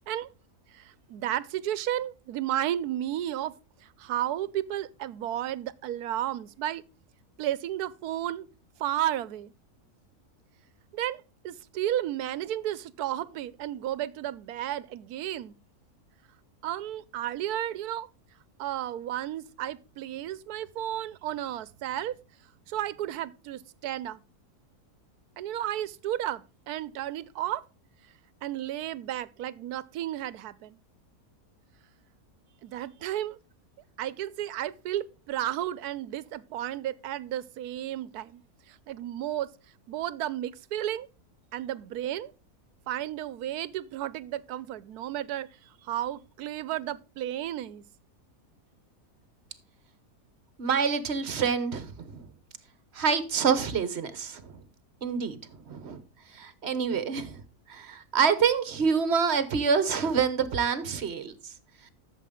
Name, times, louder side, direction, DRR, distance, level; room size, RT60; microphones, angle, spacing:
voice 1, 0.7-6.8 7.4-8.5 8.8-9.5 10.9-15.5 16.6-18.1 18.6-22.2 22.7-24.2 25.4-27.7 28.4-30.8 32.6-33.4 34.0-38.4 38.7-39.5 39.9-41.1 41.5-42.3 42.9-47.8, right 12 dB, 85° right, 1.2 m, -33 dB
voice 2, 50.6-52.2 52.9-54.5 55.0-55.4 55.7-56.0 56.4-57.4 57.7-61.3, right 6 dB, 45° right, 1.3 m, -27 dB
12.5 x 7.3 x 3.7 m
omnidirectional pair, 1.6 m